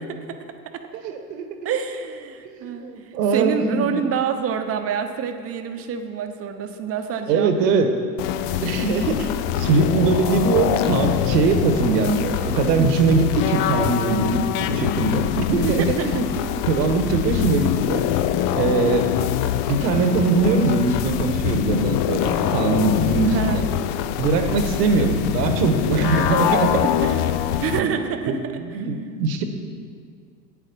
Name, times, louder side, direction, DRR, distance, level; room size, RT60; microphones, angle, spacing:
voice 1, 1.0-1.5 2.5-3.9 7.3-7.9 8.6-9.3 9.6-14.4 14.7-16.3 16.7-18.0 18.5-19.1 19.7-23.7 24.2-27.2 27.7-27.9 28.3-29.4, right 4 dB, 75° right, 7 dB, 1.3 m, -21 dB
voice 2, 1.6-2.8 3.3-8.0 12.8-12.9 15.6-16.1 23.3-23.6 27.6-28.4, right 7 dB, 30° right, 7 dB, 0.8 m, -27 dB
sound 1, 8.2-27.8, left 10 dB, 45° left, 0.5 m, -24 dB
9.1 x 8.4 x 5.3 m, 2.2 s
hypercardioid pair, 105°, 50 cm